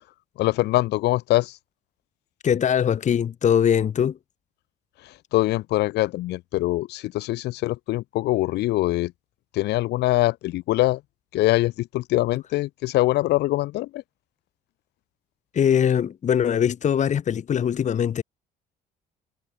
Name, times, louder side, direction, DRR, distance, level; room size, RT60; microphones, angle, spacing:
voice 1, 0.4-1.6 5.0-9.1 9.5-11.0 11.3-14.0, left 17 dB, 80° left, 2.9 m, -23 dB
voice 2, 2.4-4.2 15.5-18.2, left 8 dB, 45° left, 2.1 m, -21 dB
cardioid pair, 110°, 17 cm